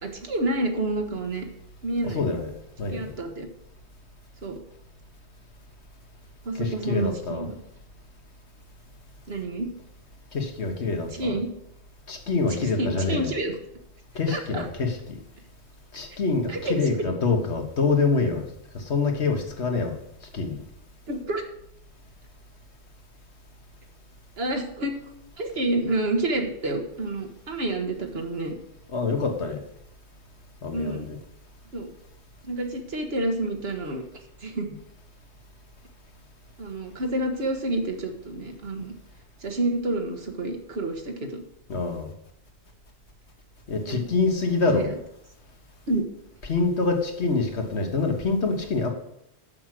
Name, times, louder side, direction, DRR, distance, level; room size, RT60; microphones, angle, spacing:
voice 1, 0.0-1.4 1.8-2.3 2.9-3.5 4.4-4.6 6.4-7.5 9.3-9.7 11.1-11.5 12.8-13.6 14.3-14.6 16.5-16.8 21.1-21.4 24.4-24.9 25.4-28.5 30.7-31.1 31.7-31.9 32.4-34.0 34.4-34.8 36.6-38.9 39.4-41.4 43.8-44.1 44.7-44.9 45.9-46.1, right 2 dB, 70° right, 1.5 m, -29 dB
voice 2, 2.0-2.5 2.8-3.1 6.5-7.5 10.3-11.4 12.1-13.3 14.2-15.2 15.9-18.5 18.7-20.0 20.3-20.6 28.9-29.6 30.6-31.2 41.7-42.1 43.7-44.9 46.4-48.9, left 4 dB, 85° left, 1.7 m, -26 dB
7.1 x 6.2 x 7.5 m
omnidirectional pair, 1.1 m